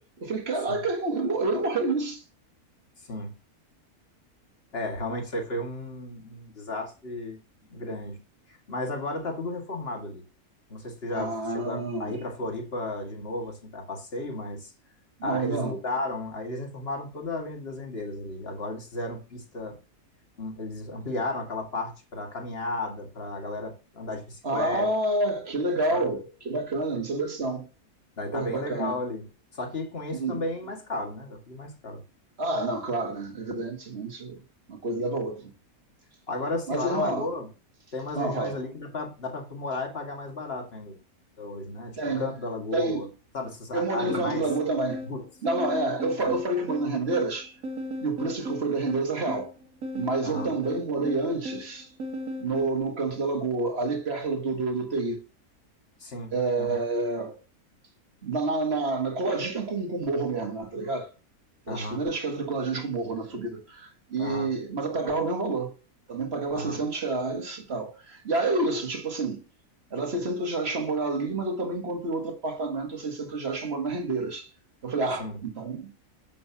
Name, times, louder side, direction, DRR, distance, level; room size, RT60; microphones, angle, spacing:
voice 1, 0.0-2.2 11.1-12.2 15.2-15.7 24.4-27.7 28.3-29.0 30.1-30.5 32.4-34.4 34.7-35.5 36.7-37.3 38.1-38.6 42.0-42.3 42.7-43.1 43.7-45.1 45.4-47.6 48.0-49.5 49.9-51.9 52.4-55.2 56.3-57.4 58.2-61.1 61.7-65.7 66.1-69.4 69.9-74.5 74.8-75.9, right 3 dB, 45° right, 1.8 m, -29 dB
voice 2, 4.7-7.4 7.7-8.2 8.5-10.2 10.7-14.7 15.2-19.8 20.4-24.9 25.9-26.1 28.2-29.3 29.5-32.0 36.3-37.5 37.9-41.0 41.4-43.1 43.3-44.4 45.1-45.2 46.2-46.4 50.2-50.5 56.0-56.3 56.6-56.8 61.7-62.0 64.2-64.5 66.5-66.8 75.2-75.4, left 2 dB, 40° left, 2.1 m, -34 dB
sound 1, 44.1-52.8, equal, 70° right, 1.8 m, -36 dB
7.8 x 7.1 x 2.8 m
omnidirectional pair, 1.6 m